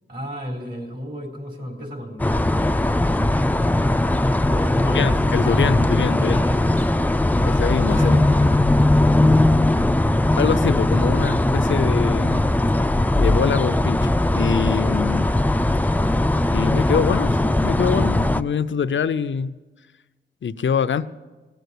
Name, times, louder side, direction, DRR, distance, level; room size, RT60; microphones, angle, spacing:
voice 1, 0.1-2.4 4.4-5.3 6.2-7.5 8.0-8.7 9.2-9.5, equal, 55° right, 1 dB, 4.0 m, -33 dB
sound 1, 2.2-18.4, left 1 dB, 10° left, 0.4 m, -19 dB
voice 2, 4.9-6.4 7.5-8.3 10.4-12.4 13.2-15.3 16.5-19.5 20.4-21.1, left 7 dB, 70° left, 13 dB, 0.6 m, -24 dB
18.0 x 8.0 x 8.4 m, 1.2 s
wide cardioid pair, 85°, 20 cm